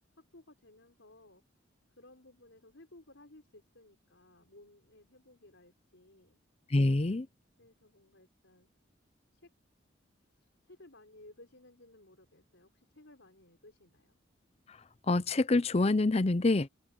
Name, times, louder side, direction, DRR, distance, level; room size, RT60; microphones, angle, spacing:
voice 1, 0.2-1.4 2.0-6.4 7.6-8.7 9.3-9.5 10.3-14.2, left 1 dB, 80° left, 4.8 m, -58 dB
voice 2, 6.7-7.3 14.7-14.8 15.1-16.7, left 2 dB, 35° left, 0.6 m, -26 dB
open air
head